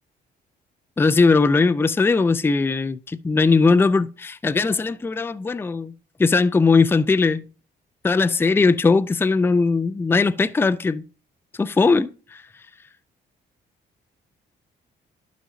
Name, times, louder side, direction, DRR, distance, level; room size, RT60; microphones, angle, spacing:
voice 1, 1.0-5.9 6.2-7.5 8.0-11.0 11.6-12.4, left 4 dB, 10° left, 0.4 m, -19 dB
11.0 x 5.1 x 2.8 m
cardioid pair, 90°, 20 cm